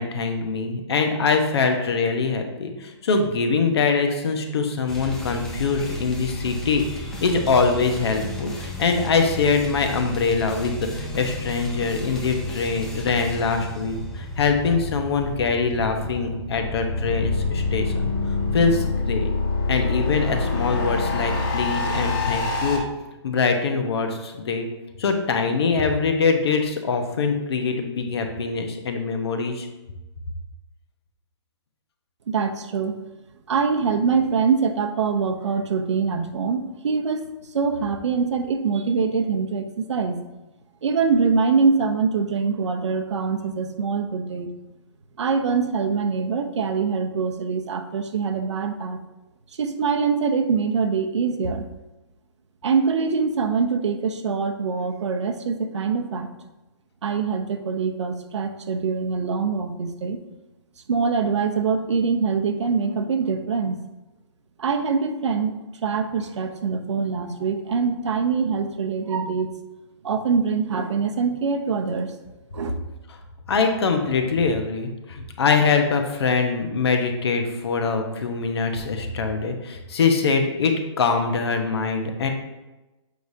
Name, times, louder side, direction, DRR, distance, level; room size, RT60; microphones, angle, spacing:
voice 1, 0.0-18.1 18.5-19.3 19.7-22.8 23.2-24.7 25.0-29.7 73.5-82.3, left 4 dB, 60° left, 4 dB, 1.0 m, -23 dB
sound 1, 4.9-18.9, left 1 dB, 5° left, 0.4 m, -34 dB
sound 2, 16.6-22.8, left 3 dB, 45° left, 1.6 m, -25 dB
voice 2, 32.3-33.0 33.5-40.2 40.8-44.5 45.2-49.0 49.6-51.7 52.6-56.3 57.0-60.2 60.9-63.8 64.6-65.5 65.8-69.5 70.0-72.1 72.5-72.8, right 5 dB, 80° right, 7 dB, 0.8 m, -24 dB
7.8 x 5.0 x 2.7 m, 1.0 s
hypercardioid pair, 165°, 15 cm